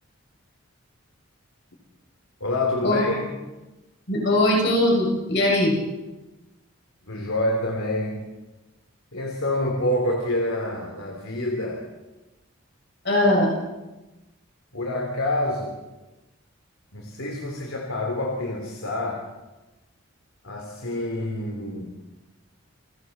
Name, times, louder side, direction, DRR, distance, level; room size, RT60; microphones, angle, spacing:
voice 1, 2.4-3.3 7.1-8.3 9.1-11.8 14.7-15.8 16.9-19.2 20.4-21.9, left 1 dB, 80° left, 0 dB, 3.2 m, -27 dB
voice 2, 4.1-5.7 13.0-13.5, left 1 dB, 55° left, -3 dB, 6.7 m, -20 dB
30.0 x 21.0 x 4.3 m, 1.1 s
head